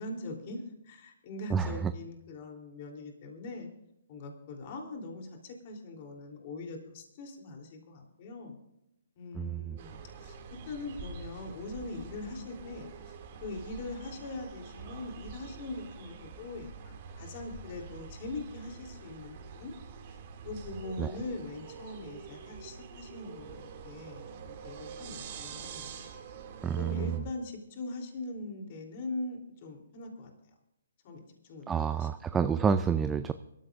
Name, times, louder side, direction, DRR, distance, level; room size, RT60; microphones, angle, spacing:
voice 1, 0.0-3.7 4.1-8.6 9.1-19.7 20.1-20.2 20.4-25.9 26.7-30.3 31.0-32.1, left 2 dB, 40° left, 2 dB, 3.4 m, -42 dB
voice 2, 1.5-1.9 9.4-9.5 21.0-21.1 26.6-27.1 31.7-33.3, right 6 dB, 10° right, 11 dB, 0.5 m, -28 dB
sound 1, 9.8-27.2, right 6 dB, 40° right, 2.4 m, -46 dB
25.0 x 14.0 x 2.6 m, 0.83 s
hypercardioid pair, 135°, 0 cm